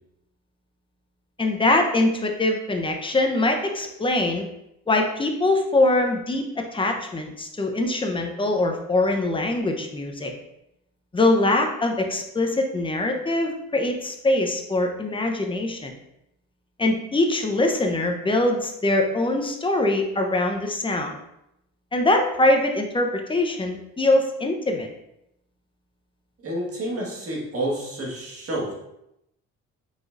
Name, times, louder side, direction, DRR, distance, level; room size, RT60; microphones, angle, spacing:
voice 1, 1.4-4.5 4.9-10.3 11.1-15.9 16.8-21.2 21.9-24.9, left 2 dB, 15° left, 3 dB, 0.7 m, -23 dB
voice 2, 26.4-28.7, right 1 dB, 50° right, -3 dB, 1.6 m, -29 dB
4.9 x 3.8 x 2.5 m, 0.83 s
cardioid pair, 90°, 30 cm